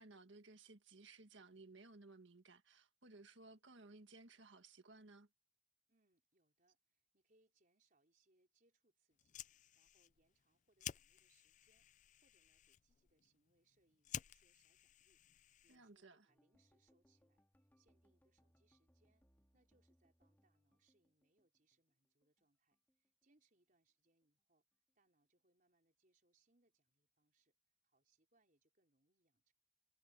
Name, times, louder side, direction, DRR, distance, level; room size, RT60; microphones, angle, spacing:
voice 1, 0.0-5.3 15.7-16.3, right 3 dB, 75° right, 1.7 m, -60 dB
voice 2, 5.9-9.4 9.7-11.9 12.2-19.2 19.5-24.6 24.9-27.5 27.8-29.5, right 2 dB, 40° right, 4.7 m, -81 dB
Fire, 9.1-16.0, left 11 dB, 40° left, 0.3 m, -54 dB
sound 1, 16.3-22.5 22.7-23.8 24.1-24.4 24.7-24.9, equal, 10° left, 1.9 m, -77 dB
head